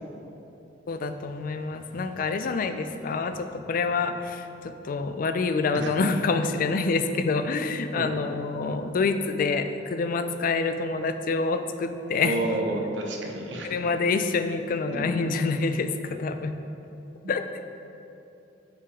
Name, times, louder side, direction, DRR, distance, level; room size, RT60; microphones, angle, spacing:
voice 1, 0.9-12.3 13.6-16.5 17.3-17.5, left 4 dB, 50° left, 9 dB, 0.4 m, -27 dB
voice 2, 12.2-13.8 14.9-15.1 17.2-17.3, right 2 dB, 75° right, 1 dB, 0.8 m, -30 dB
5.8 x 4.8 x 4.9 m, 2.9 s
head